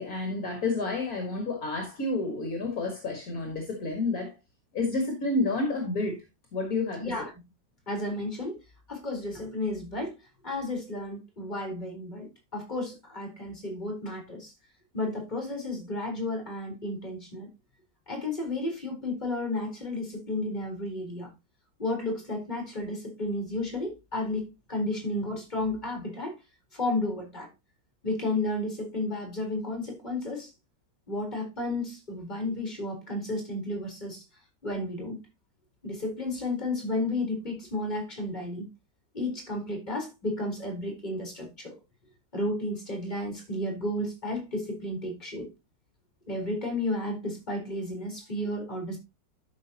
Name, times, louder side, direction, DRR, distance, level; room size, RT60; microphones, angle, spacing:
voice 1, 0.0-4.3 4.7-6.2 6.5-7.3, left 2 dB, 50° left, 2.2 m, -30 dB
voice 2, 7.9-8.6 8.9-10.1 10.4-14.5 14.9-17.5 18.1-21.3 21.8-26.3 26.7-27.5 28.0-30.5 31.1-34.2 34.6-35.2 35.8-38.7 39.1-41.7 42.3-45.5 46.3-49.0, left 2 dB, 25° left, 3.9 m, -32 dB
12.5 x 6.0 x 2.9 m
omnidirectional pair, 2.0 m